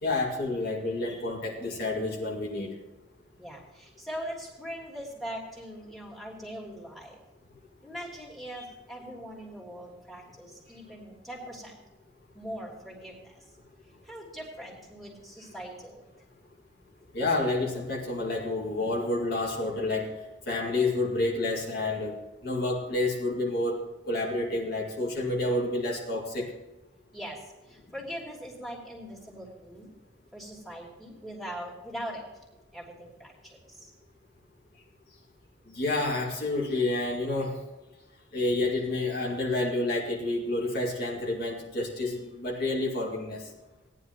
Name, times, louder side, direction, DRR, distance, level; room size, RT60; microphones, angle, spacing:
voice 1, 0.0-2.7 8.6-8.7 17.1-20.1 20.5-26.5 35.7-37.6 38.3-43.5, left 2 dB, 50° left, -3 dB, 2.2 m, -29 dB
voice 2, 3.4-7.1 7.8-11.7 12.3-13.1 14.1-16.0 27.1-27.4 27.9-29.9 30.3-32.2 32.7-33.3, equal, ahead, -4 dB, 3.0 m, -41 dB
18.0 x 10.5 x 3.0 m, 1.1 s
head